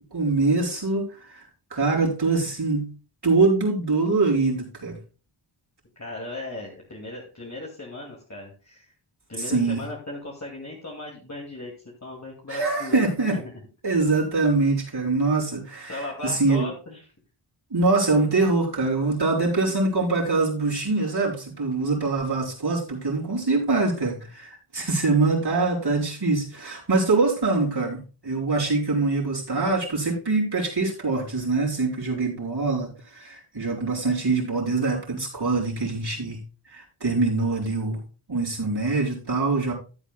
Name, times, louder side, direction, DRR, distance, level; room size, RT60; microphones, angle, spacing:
voice 1, 0.1-1.4 1.7-2.9 3.2-5.0 9.4-9.8 12.5-13.4 13.8-16.7 17.7-36.4 36.7-38.0 38.3-39.7, right 3 dB, 50° right, -4 dB, 4.9 m, -24 dB
voice 2, 6.0-8.9 9.3-11.7 12.0-13.0 13.3-13.5 15.9-17.1, left 2 dB, 35° left, -2 dB, 2.4 m, -37 dB
15.0 x 8.5 x 2.3 m, 0.34 s
wide cardioid pair, 55°, 48 cm